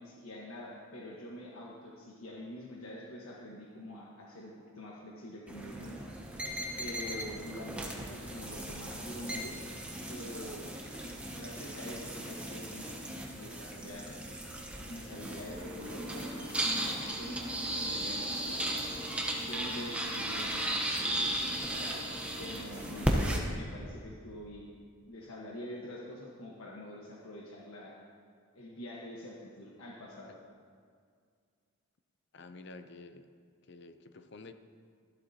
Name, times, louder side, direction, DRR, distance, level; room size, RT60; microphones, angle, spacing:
voice 1, 0.0-6.0 6.8-9.5 10.1-10.7 11.3-13.0 13.3-14.2 14.8-18.9 19.4-21.0 21.6-22.1 22.4-24.6 25.1-28.0 28.5-30.3, left 1 dB, 80° left, -3 dB, 1.3 m, -45 dB
sound 1, 5.5-23.4, right 1 dB, 5° right, 0.9 m, -36 dB
sound 2, 15.5-23.3, equal, 45° right, 2.4 m, -46 dB
voice 2, 32.3-33.3 33.6-34.5, left 3 dB, 50° left, 9 dB, 0.6 m, -50 dB
14.0 x 12.0 x 2.8 m, 2.1 s
head